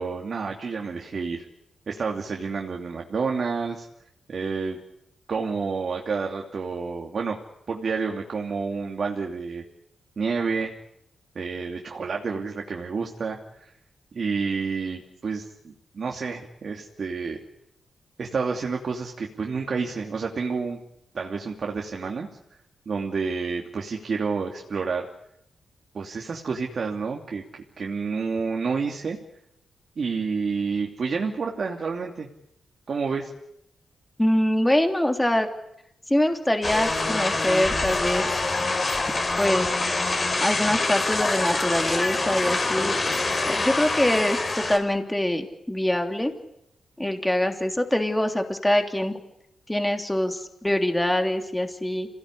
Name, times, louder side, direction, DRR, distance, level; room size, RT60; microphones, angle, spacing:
voice 1, 0.0-1.5 1.9-3.9 4.3-4.8 5.3-7.4 7.7-9.6 10.2-10.7 11.3-13.7 14.1-17.4 18.2-20.8 21.1-22.3 22.9-25.1 25.9-27.4 27.8-29.2 30.0-32.3 32.9-33.3, right 5 dB, 55° right, 2 dB, 2.9 m, -29 dB
voice 2, 34.2-35.5 36.1-38.2 39.4-39.7 40.4-42.9 43.5-46.3 47.0-49.2 49.7-52.1, left 1 dB, 10° left, 5 dB, 3.3 m, -24 dB
sound 1, 36.6-44.8, left 3 dB, 35° left, 4.6 m, -25 dB
27.0 x 18.0 x 10.0 m, 0.80 s
cardioid pair, 80°, 0 cm